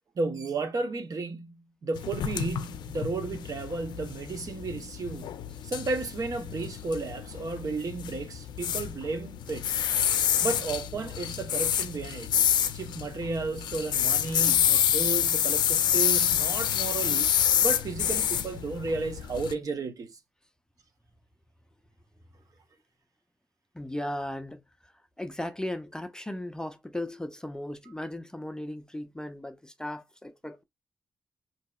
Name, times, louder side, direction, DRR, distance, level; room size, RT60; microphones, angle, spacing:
voice 1, 0.2-9.7 10.4-12.3 12.7-20.2, right 3 dB, 55° right, 0.8 m, -33 dB
sound 1, 2.0-19.5, left 9 dB, 90° left, 0.4 m, -28 dB
voice 2, 23.7-30.6, left 1 dB, 10° left, 0.5 m, -37 dB
3.9 x 2.8 x 2.2 m
cardioid pair, 80°, 7 cm